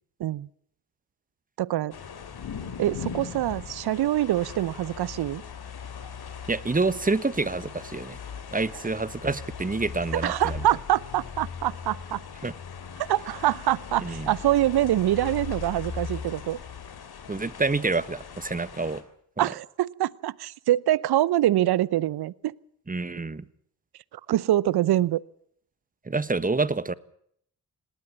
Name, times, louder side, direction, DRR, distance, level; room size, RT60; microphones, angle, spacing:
voice 1, 1.6-1.9 2.8-5.4 10.2-12.2 13.0-16.6 19.4-22.5 24.3-25.2, right 13 dB, 60° right, 23 dB, 0.8 m, -25 dB
sound 1, 1.9-19.0, left 6 dB, 60° left, 3.2 m, -39 dB
voice 2, 6.5-8.2 8.5-10.6 12.4-12.5 14.0-14.3 17.3-19.0 22.9-23.4 26.0-26.9, right 3 dB, 20° right, 17 dB, 1.4 m, -27 dB
19.0 x 18.5 x 8.6 m, 0.66 s
hypercardioid pair, 40°, 42 cm